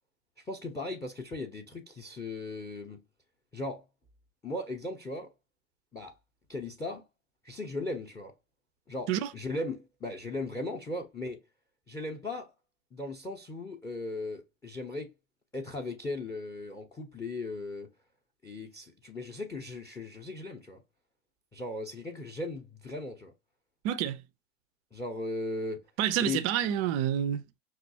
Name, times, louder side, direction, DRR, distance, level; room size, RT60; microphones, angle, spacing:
voice 1, 0.4-3.0 3.5-3.9 4.4-5.3 5.9-6.1 6.5-7.1 7.4-8.3 8.9-11.4 11.9-12.5 12.9-15.1 15.5-17.9 18.4-20.8 21.5-23.3 24.9-25.8 26.2-26.5, left 2 dB, 10° left, 0.7 m, -37 dB
voice 2, 23.8-24.2 26.0-27.4, right 10 dB, 30° right, 0.4 m, -28 dB
5.8 x 2.4 x 2.7 m
figure-of-eight pair, 100°, 39 cm